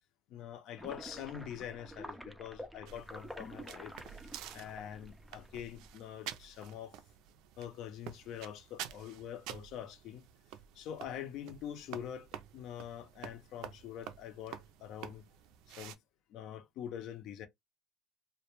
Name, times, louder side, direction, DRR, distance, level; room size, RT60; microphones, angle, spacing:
voice 1, 0.3-3.9 4.5-7.0 7.6-10.3 10.7-15.2 15.7-16.0 16.3-17.5, left 10 dB, 65° left, 0.6 m, -45 dB
sound 1, 0.8-5.9, equal, 5° right, 0.3 m, -49 dB
sound 2, 2.9-16.0, right 10 dB, 75° right, 0.4 m, -49 dB
2.2 x 2.1 x 2.9 m
cardioid pair, 135°, 0 cm